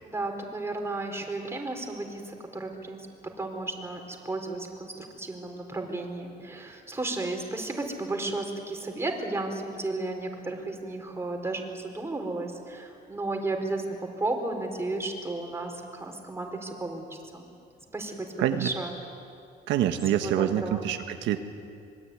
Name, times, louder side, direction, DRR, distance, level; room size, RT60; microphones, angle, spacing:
voice 1, 0.0-3.0 3.4-17.4 17.9-18.3 18.6-19.0 20.2-20.8, right 2 dB, 15° right, 2 dB, 4.4 m, -33 dB
voice 2, 18.4-18.7 19.7-21.4, right 11 dB, 90° right, 6 dB, 1.5 m, -26 dB
25.5 x 22.5 x 9.8 m, 2.4 s
cardioid pair, 125°, 19 cm